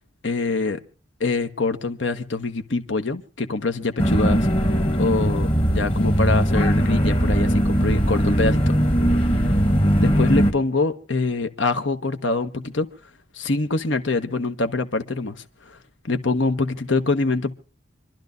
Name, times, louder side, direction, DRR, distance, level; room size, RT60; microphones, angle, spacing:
voice 1, 0.2-0.8 1.2-4.5 5.0-8.7 10.0-12.9 13.3-15.4 15.7-15.8 16.0-17.5, left 3 dB, 75° left, 1.0 m, -24 dB
sound 1, 4.0-10.5, equal, 30° left, 1.2 m, -19 dB
27.0 x 12.0 x 2.6 m
head